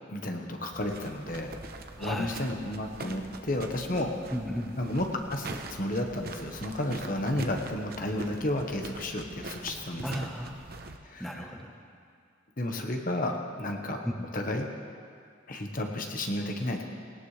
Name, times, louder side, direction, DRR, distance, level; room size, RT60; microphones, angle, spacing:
voice 1, 0.1-1.5 2.0-4.1 4.8-10.3 11.0-11.3 12.6-14.0 14.3-14.7 15.5-16.8, left 1 dB, 45° left, 3 dB, 1.2 m, -32 dB
sound 1, 0.7-11.0, right 2 dB, 55° right, 0.9 m, -43 dB
voice 2, 2.0-2.3 4.3-4.8 10.0-10.6 11.2-11.8 14.0-14.3, equal, ahead, 0 dB, 1.0 m, -34 dB
18.5 x 18.5 x 3.3 m, 2.3 s
head